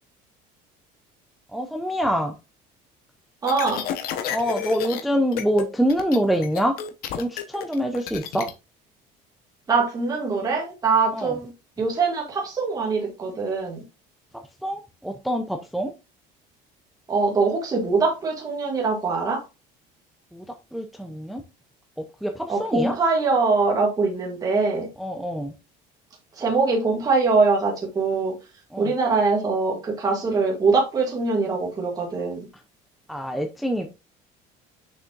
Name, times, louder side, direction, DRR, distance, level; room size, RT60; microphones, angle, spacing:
voice 1, 1.5-2.3 4.3-6.8 7.1-8.5 11.1-11.4 14.6-15.9 20.3-20.4 20.7-21.4 22.2-23.0 25.0-25.5 28.7-28.9 33.1-33.9, equal, ahead, 0.5 m, -25 dB
sound 1, 3.4-5.0 5.3-5.6 5.9-8.5, left 9 dB, 55° left, 1.0 m, -31 dB
voice 2, 3.4-3.9 9.7-11.5 11.8-13.8 17.1-19.4 22.5-24.9 26.4-28.3 28.8-32.5, right 4 dB, 20° right, 2.0 m, -23 dB
6.8 x 6.0 x 2.5 m
cardioid pair, 170°, 18 cm